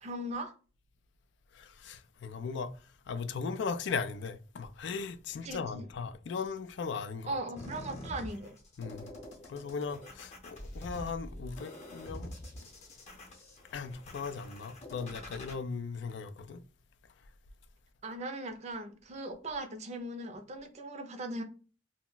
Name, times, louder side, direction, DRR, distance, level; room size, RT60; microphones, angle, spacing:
voice 1, 0.0-0.5 5.4-5.9 7.3-8.6 18.0-21.4, right 1 dB, 35° right, 0.5 m, -39 dB
voice 2, 1.5-7.4 8.8-9.1 9.4-12.3 13.7-16.6, left 5 dB, 65° left, 0.3 m, -38 dB
sound 1, 7.6-15.5, left 1 dB, 35° left, 0.7 m, -46 dB
2.3 x 2.1 x 3.8 m
head